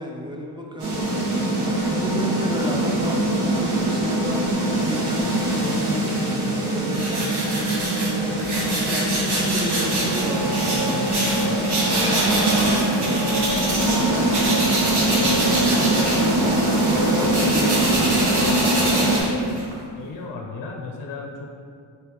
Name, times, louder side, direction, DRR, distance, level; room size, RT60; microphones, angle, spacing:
voice 1, 0.0-1.4 1.8-7.8 8.9-13.2 13.8-14.4 15.4-19.5, right 1 dB, 10° right, -1 dB, 0.5 m, -33 dB
sound 1, 0.8-19.2, right 1 dB, 75° right, 1.2 m, -22 dB
sound 2, 6.9-14.0 14.3-19.7, right 1 dB, 50° right, 1.1 m, -27 dB
voice 2, 19.9-21.5, left 4 dB, 45° left, 1 dB, 0.6 m, -34 dB
4.4 x 3.3 x 3.0 m, 2.3 s
cardioid pair, 65°, 49 cm